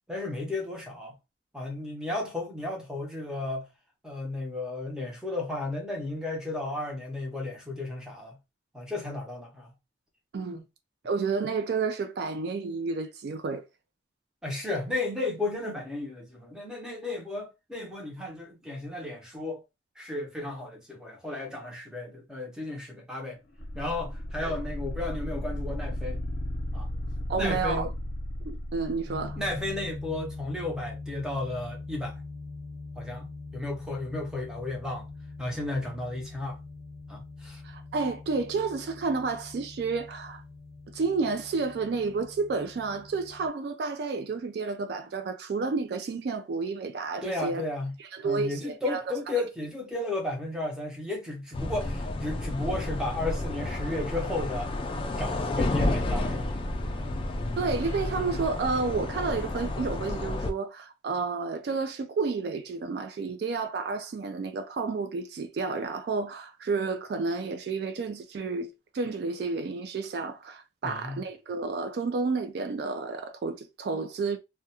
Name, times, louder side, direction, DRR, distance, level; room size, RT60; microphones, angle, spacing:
voice 1, 0.1-1.1 1.5-3.7 4.0-8.4 8.7-9.7 10.5-10.6 14.4-19.6 20.0-23.4 23.7-26.2 26.7-26.9 27.4-27.9 29.4-32.2 33.0-35.1 35.4-36.6 37.1-37.6 47.2-47.9 48.2-54.7 55.2-56.6 56.9-57.2 70.8-71.2, left 2 dB, 5° right, 0.7 m, -34 dB
voice 2, 11.0-13.6 24.4-24.6 27.3-27.9 28.5-29.4 37.6-40.4 40.9-47.6 48.0-49.0 57.6-74.4, right 4 dB, 60° right, 0.3 m, -31 dB
sound 1, 23.6-29.8, left 1 dB, 70° left, 0.6 m, -35 dB
sound 2, 29.1-43.5, left 3 dB, 35° right, 1.0 m, -43 dB
sound 3, 51.5-60.5, left 2 dB, 30° left, 0.3 m, -31 dB
2.3 x 2.2 x 2.8 m
head